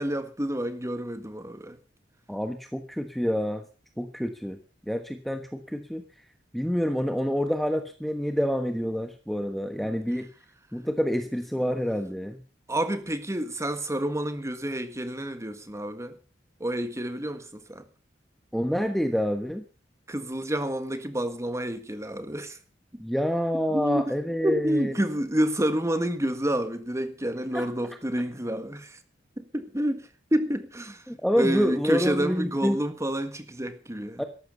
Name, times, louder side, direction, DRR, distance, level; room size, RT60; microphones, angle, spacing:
voice 1, 0.0-1.8 9.8-10.0 12.7-16.2 16.6-17.4 17.7-17.8 20.1-22.6 23.7-24.1 24.4-29.0 29.4-31.0 31.4-34.2, right 1 dB, 15° right, 1.7 m, -29 dB
voice 2, 2.3-3.6 4.0-4.6 4.9-6.0 6.5-10.3 10.7-12.4 18.5-19.6 23.0-24.9 27.5-27.7 31.1-32.8 34.2-34.3, equal, ahead, 1.2 m, -27 dB
13.5 x 11.5 x 6.8 m
head